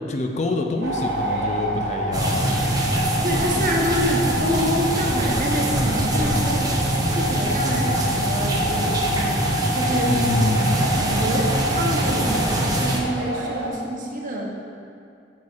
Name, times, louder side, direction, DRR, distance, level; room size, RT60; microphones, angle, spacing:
voice 1, 0.1-2.5 10.1-10.8, left 2 dB, 40° left, 3 dB, 0.5 m, -25 dB
sound 1, 0.8-13.7, equal, 75° right, 0.9 m, -27 dB
sound 2, 2.1-13.0, right 1 dB, 20° right, 0.7 m, -24 dB
voice 2, 3.2-10.1 10.7-14.5, equal, 50° right, -2 dB, 1.0 m, -27 dB
8.2 x 6.4 x 2.4 m, 2.4 s
head